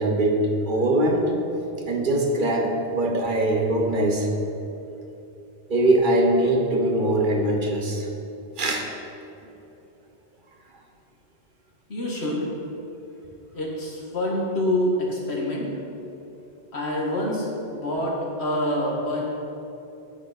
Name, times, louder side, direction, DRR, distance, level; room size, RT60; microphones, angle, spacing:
voice 1, 0.0-1.3 1.9-4.3 5.7-8.1 8.6-8.9 15.0-15.1, right 1 dB, 55° right, 2 dB, 1.1 m, -22 dB
voice 2, 11.9-12.5 13.5-15.7 16.7-19.2, left 1 dB, 90° left, -3 dB, 2.1 m, -26 dB
9.4 x 9.4 x 4.2 m, 2.9 s
omnidirectional pair, 1.1 m